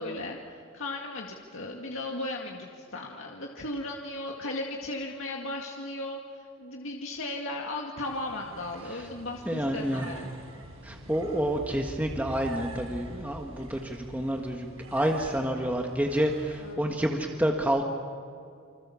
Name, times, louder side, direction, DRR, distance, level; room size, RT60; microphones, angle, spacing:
voice 1, 0.0-10.3 16.6-16.9, left 2 dB, 75° left, 0 dB, 2.1 m, -36 dB
sound 1, 8.0-16.7, right 1 dB, 80° right, 6.8 m, -45 dB
voice 2, 9.5-10.1 10.8-17.8, equal, 10° right, 1 dB, 1.6 m, -29 dB
29.0 x 26.0 x 7.1 m, 2.3 s
head